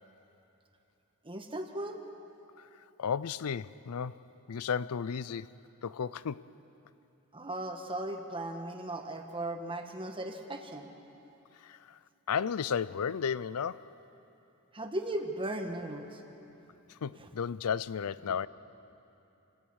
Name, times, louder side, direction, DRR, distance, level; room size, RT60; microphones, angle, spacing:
voice 1, 1.2-2.0 7.3-10.9 14.7-16.2, right 1 dB, 25° right, 1.5 m, -37 dB
voice 2, 2.6-4.2 4.5-5.6 5.8-6.5 11.5-12.0 12.3-13.9 16.9-18.5, left 7 dB, 75° left, 0.5 m, -34 dB
28.5 x 18.0 x 6.4 m
head